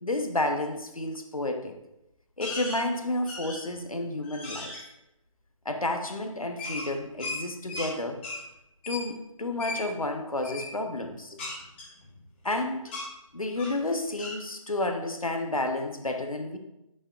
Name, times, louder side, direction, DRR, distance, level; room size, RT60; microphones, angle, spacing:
voice 1, 0.0-1.8 2.4-4.7 5.6-8.2 8.9-11.4 12.4-12.9 13.3-16.6, left 2 dB, 85° left, 6 dB, 1.1 m, -31 dB
sound 1, 2.4-2.8 3.3-3.8 4.2-4.8 6.6-7.9 8.2-8.4 8.8-9.1 9.6-9.8 10.4-10.7 11.4-12.5 12.9-13.1 13.6-13.8 14.2-14.4, left 2 dB, 20° left, 1.4 m, -36 dB
8.7 x 6.6 x 2.5 m, 0.88 s
figure-of-eight pair, 155°, 17 cm